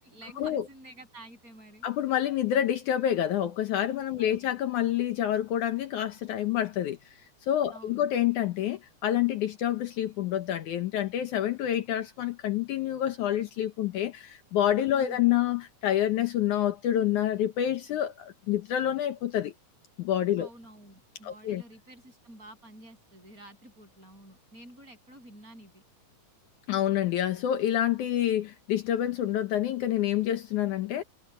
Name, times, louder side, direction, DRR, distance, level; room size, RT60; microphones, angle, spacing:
voice 1, 0.0-1.9 4.2-4.4 7.7-8.1 15.0-15.2 20.4-25.8, right 1 dB, 25° right, 8.3 m, -50 dB
voice 2, 1.8-7.1 7.5-19.5 20.0-20.5 21.2-21.6 26.7-31.0, left 11 dB, 70° left, 2.4 m, -28 dB
omnidirectional pair, 3.8 m